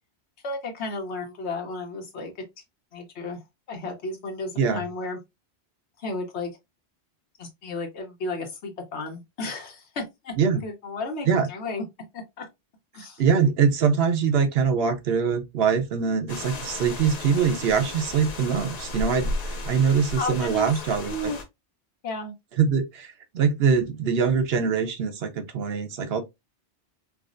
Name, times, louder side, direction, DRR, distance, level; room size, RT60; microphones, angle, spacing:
voice 1, 0.4-2.3 2.9-3.4 3.7-5.2 6.0-6.5 7.4-11.8 12.1-12.4 12.9-13.2 20.2-20.7 21.1-21.4 22.0-22.3, left 2 dB, 75° left, 1.2 m, -33 dB
voice 2, 13.2-21.3 22.6-26.2, right 6 dB, 65° right, 0.9 m, -23 dB
sound 1, 16.3-21.4, left 2 dB, 45° left, 0.6 m, -34 dB
4.8 x 2.0 x 2.4 m
omnidirectional pair, 1.1 m